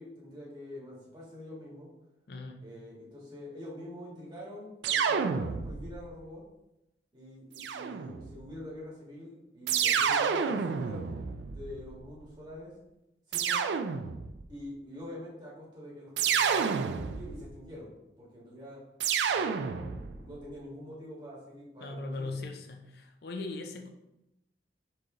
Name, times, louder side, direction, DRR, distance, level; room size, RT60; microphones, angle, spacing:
voice 1, 0.0-1.9 2.6-6.4 7.1-12.7 13.3-13.7 14.5-17.9 18.2-18.8 19.3-22.4, left 1 dB, 25° right, -6 dB, 1.7 m, -45 dB
voice 2, 2.3-2.6 21.8-23.9, left 3 dB, 60° left, 5 dB, 0.5 m, -39 dB
sound 1, 4.8-6.0 7.6-8.4 9.7-12.0 13.3-14.4 16.2-17.5 19.0-20.2, right 6 dB, 80° right, 0.4 m, -29 dB
4.6 x 3.1 x 3.7 m, 0.91 s
head